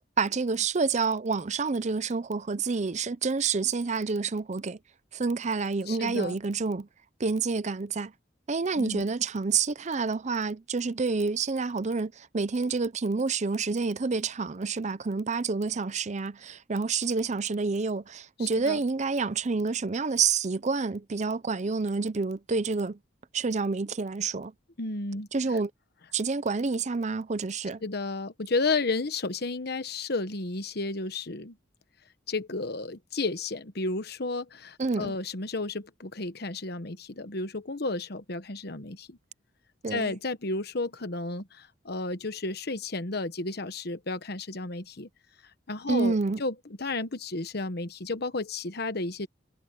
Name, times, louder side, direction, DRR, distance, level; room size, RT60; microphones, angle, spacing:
voice 1, 0.2-4.8 5.1-6.9 7.2-8.1 8.5-23.0 23.3-24.5 25.3-25.7 26.1-27.8 34.8-35.1 39.8-40.1 45.9-46.4, right 4 dB, 40° right, 0.6 m, -28 dB
voice 2, 5.9-6.4 8.8-9.1 18.4-18.8 24.8-25.3 27.8-31.5 32.3-39.2 39.9-45.1 45.7-49.3, left 3 dB, 60° left, 1.2 m, -32 dB
head